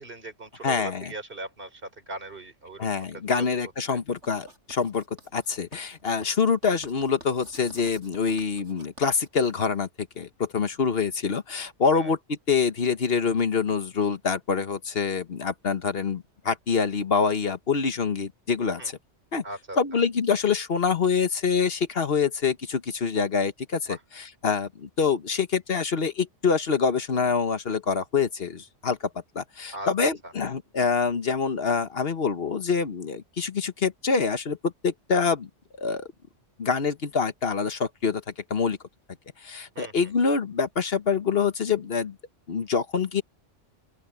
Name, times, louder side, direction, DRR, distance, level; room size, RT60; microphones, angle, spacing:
voice 1, 0.0-3.5 3.9-4.0 11.9-12.1 18.8-18.9 19.4-19.8 23.9-24.0 29.7-29.9 30.2-30.3 39.8-40.1, right 1 dB, 45° right, 4.1 m, -39 dB
voice 2, 0.6-1.1 2.8-5.0 5.3-19.0 19.3-19.4 19.8-24.0 24.4-29.0 29.3-35.5 35.8-36.1 36.6-38.2 38.5-38.8 39.4-42.1 42.5-43.2, left 5 dB, 55° left, 1.3 m, -25 dB
Writing, 4.2-10.0, right 1 dB, 70° right, 6.4 m, -50 dB
open air
omnidirectional pair, 1.3 m